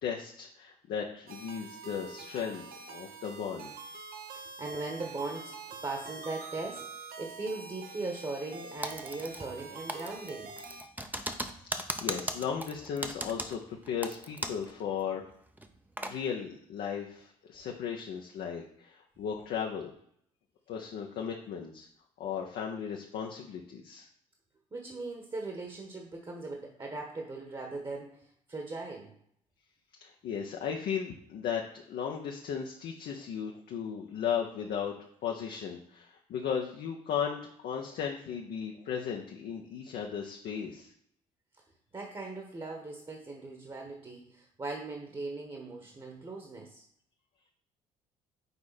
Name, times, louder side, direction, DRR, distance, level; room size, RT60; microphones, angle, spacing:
voice 1, 0.0-3.7 11.7-15.2 16.1-19.9 20.7-21.9 22.2-24.1 30.0-31.6 31.9-40.9, left 7 dB, 60° left, 1 dB, 0.9 m, -36 dB
sound 1, 1.3-10.8, right 4 dB, 55° right, 1.0 m, -46 dB
voice 2, 4.3-5.5 5.8-10.5 24.7-29.1 41.9-46.8, right 3 dB, 25° right, 1 dB, 1.5 m, -39 dB
Typing, 8.8-9.6 9.9-14.7 15.0-15.1 15.6-16.2, right 1 dB, 10° right, 0.8 m, -37 dB
6.9 x 4.7 x 4.2 m, 0.68 s
figure-of-eight pair, 50°, 19 cm